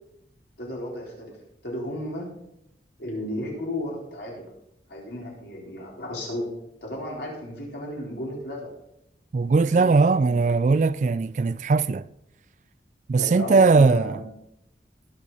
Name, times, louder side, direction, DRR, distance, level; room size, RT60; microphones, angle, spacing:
voice 1, 0.6-1.4 1.6-2.3 3.0-4.5 4.9-6.6 6.8-8.7 9.4-10.4 13.2-14.3, left 1 dB, 75° left, 4.2 m, -34 dB
voice 2, 9.3-12.1 13.1-14.2, right 4 dB, 45° right, 0.3 m, -19 dB
19.5 x 6.5 x 4.1 m
head